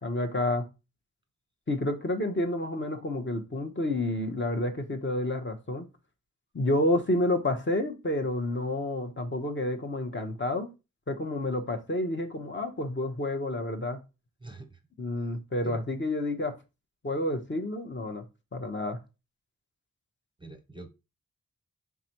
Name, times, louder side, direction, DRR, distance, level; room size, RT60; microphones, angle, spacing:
voice 1, 0.0-0.6 1.7-5.9 6.5-10.7 11.1-14.0 15.0-16.5 17.0-18.2 18.5-19.0, left 1 dB, 35° left, 4 dB, 0.9 m, -29 dB
voice 2, 14.4-14.8 15.6-15.8 20.4-20.9, right 2 dB, 15° right, 6 dB, 0.7 m, -44 dB
3.9 x 3.6 x 2.9 m, 0.27 s
cardioid pair, 40°, 34 cm